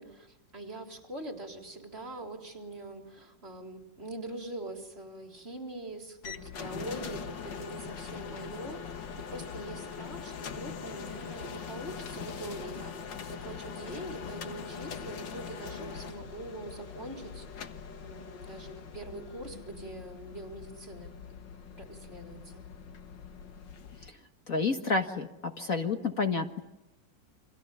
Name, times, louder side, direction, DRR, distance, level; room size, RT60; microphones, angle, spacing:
voice 1, 0.0-17.7 18.0-21.2 21.7-22.7, right 2 dB, 30° right, 3 dB, 3.9 m, -43 dB
sound 1, 6.2-24.1, left 6 dB, 75° left, 2.2 m, -42 dB
voice 2, 24.5-25.3 25.6-26.6, left 4 dB, 50° left, 5 dB, 2.1 m, -29 dB
30.0 x 26.0 x 7.2 m, 0.93 s
omnidirectional pair, 2.0 m